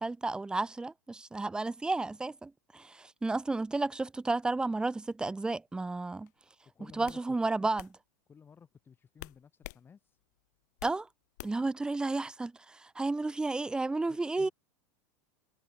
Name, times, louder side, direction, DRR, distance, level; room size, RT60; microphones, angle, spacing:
voice 1, 0.0-6.3 6.9-7.9 10.8-11.1 11.4-14.5, right 3 dB, 10° right, 0.6 m, -32 dB
sound 1, 6.3-6.5 7.1-7.2 7.8-7.9 9.2-9.8 10.2-11.0 11.4-11.7, left 20 dB, 70° left, 3.8 m, -46 dB
voice 2, 6.7-7.2 8.3-10.2 14.1-14.5, left 6 dB, 20° left, 3.2 m, -55 dB
supercardioid pair, 120°, 10 cm